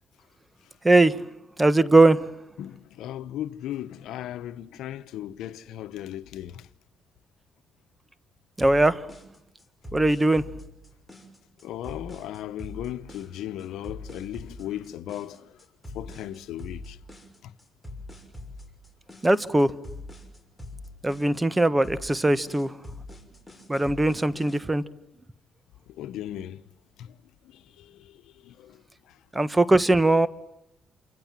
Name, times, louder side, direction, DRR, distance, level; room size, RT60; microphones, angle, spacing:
voice 1, 0.8-1.2 1.6-2.3 8.6-9.1 9.9-10.5 19.2-19.7 21.0-22.8 23.7-24.8 29.3-30.3, right 2 dB, 15° right, 1.4 m, -20 dB
voice 2, 2.6-6.5 11.6-15.4 15.9-16.9 26.0-26.6 28.5-28.7, left 12 dB, 85° left, 1.1 m, -36 dB
sound 1, 8.6-24.6, left 2 dB, 5° left, 6.0 m, -43 dB
28.5 x 25.5 x 7.6 m
cardioid pair, 90°, 0 cm